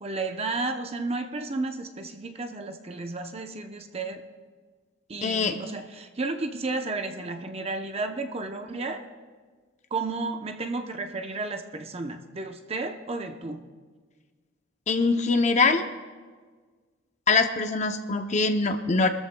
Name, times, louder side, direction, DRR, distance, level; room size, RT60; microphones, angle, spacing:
voice 1, 0.0-4.2 5.1-9.0 9.9-13.7, right 3 dB, 30° right, 5 dB, 0.7 m, -32 dB
voice 2, 5.2-5.6 14.9-15.8 17.3-19.1, left 4 dB, 35° left, 7 dB, 0.6 m, -23 dB
24.0 x 13.5 x 2.2 m, 1.5 s
head